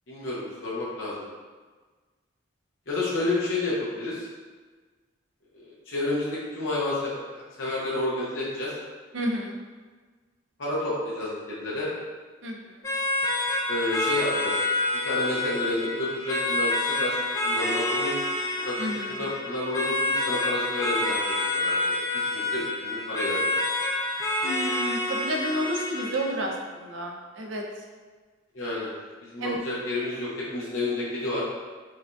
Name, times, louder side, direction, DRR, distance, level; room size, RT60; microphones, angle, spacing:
voice 1, 0.1-1.1 2.9-4.3 5.6-8.7 10.6-11.9 13.7-14.6 15.0-18.1 18.6-22.0 22.3-23.5 28.5-28.9 29.2-31.4, left 2 dB, 85° left, -7 dB, 0.8 m, -30 dB
voice 2, 9.1-9.6 12.4-12.8 18.8-19.2 24.4-27.8 29.4-29.6, right 1 dB, 75° right, 0 dB, 0.5 m, -31 dB
sound 1, 12.8-26.4, left 2 dB, 15° left, 0.3 m, -28 dB
4.7 x 2.3 x 2.6 m, 1.4 s
head